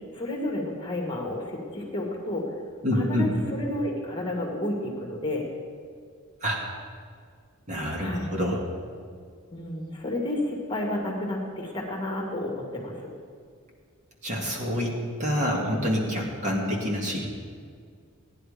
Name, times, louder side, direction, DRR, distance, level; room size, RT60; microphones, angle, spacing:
voice 1, 0.1-2.4 2.9-5.5 8.0-8.3 9.5-13.1, left 1 dB, 20° left, -1 dB, 2.1 m, -31 dB
voice 2, 2.8-3.3 6.4-6.6 7.7-8.6 14.2-17.3, equal, 35° right, -2 dB, 2.2 m, -27 dB
17.0 x 10.5 x 5.1 m, 2.1 s
head